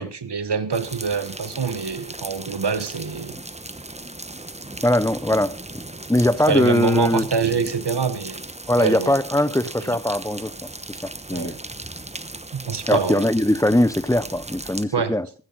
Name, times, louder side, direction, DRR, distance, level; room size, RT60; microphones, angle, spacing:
voice 1, 0.0-3.3 6.5-8.4 8.8-9.2 9.8-10.0 11.3-11.6 12.5-13.2 14.9-15.1, right 5 dB, 65° right, 1.4 m, -25 dB
sound 1, 0.7-14.8, right 2 dB, 15° right, 1.1 m, -37 dB
voice 2, 4.8-5.6 6.1-7.2 8.7-11.6 12.9-15.3, left 1 dB, 5° left, 0.6 m, -21 dB
15.0 x 14.5 x 4.0 m
wide cardioid pair, 70°, 44 cm